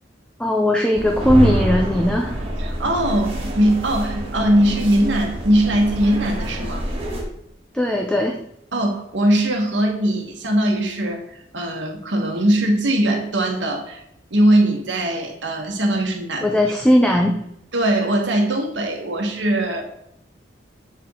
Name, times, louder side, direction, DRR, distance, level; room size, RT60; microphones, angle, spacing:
voice 1, 0.4-2.4 7.7-8.4 16.4-17.4, equal, 5° left, 2 dB, 0.4 m, -18 dB
sound 1, 0.9-7.2, right 1 dB, 30° right, 1.5 m, -26 dB
voice 2, 2.6-6.9 8.7-14.0 14.3-16.5 17.7-19.8, right 1 dB, 75° right, 3 dB, 1.2 m, -20 dB
7.3 x 4.5 x 3.7 m, 0.77 s
head